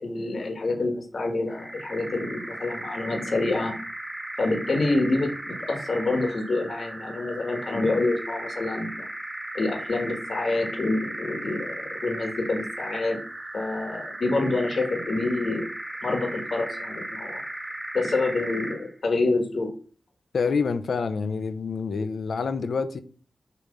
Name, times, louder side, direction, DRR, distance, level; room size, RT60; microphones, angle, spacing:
voice 1, 0.0-3.8 4.4-9.1 9.5-13.2 13.5-15.7 16.0-17.4 17.9-19.7, left 2 dB, 65° left, 1.4 m, -27 dB
sound 1, 1.5-18.9, right 1 dB, 15° right, 1.9 m, -36 dB
voice 2, 20.3-23.0, left 5 dB, 80° left, 0.7 m, -27 dB
6.9 x 3.2 x 5.4 m
wide cardioid pair, 85°, 0 cm